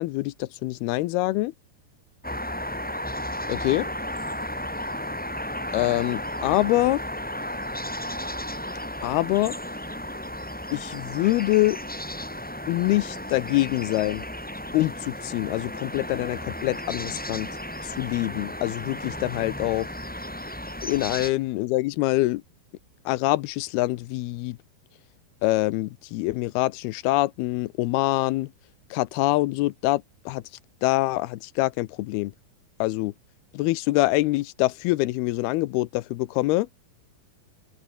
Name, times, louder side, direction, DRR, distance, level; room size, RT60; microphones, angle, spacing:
voice 1, 0.0-1.5 3.5-3.9 5.7-7.0 9.0-9.6 10.7-11.8 12.7-14.3 14.7-17.5 17.8-19.9 20.8-22.4 23.1-24.6 25.4-28.5 28.9-30.4 30.8-32.3 32.8-33.1 33.5-36.7, left 19 dB, 85° left, 2.7 m, -25 dB
sound 1, 2.2-21.3, left 1 dB, 5° left, 1.0 m, -34 dB
open air
omnidirectional pair, 4.4 m